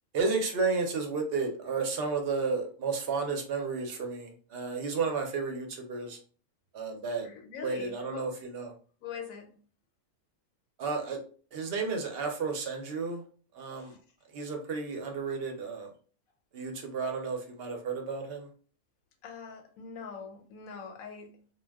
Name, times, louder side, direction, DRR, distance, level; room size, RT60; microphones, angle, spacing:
voice 1, 0.1-6.2 6.7-7.3 7.6-8.7 10.8-11.2 11.5-13.2 13.5-14.0 14.3-15.9 16.5-18.5, right 4 dB, 60° right, 3 dB, 0.7 m, -32 dB
voice 2, 7.2-8.4 9.0-9.6 13.7-14.0 19.2-21.5, left 6 dB, 90° left, 4 dB, 1.1 m, -43 dB
2.2 x 2.1 x 3.4 m, 0.41 s
omnidirectional pair, 1.4 m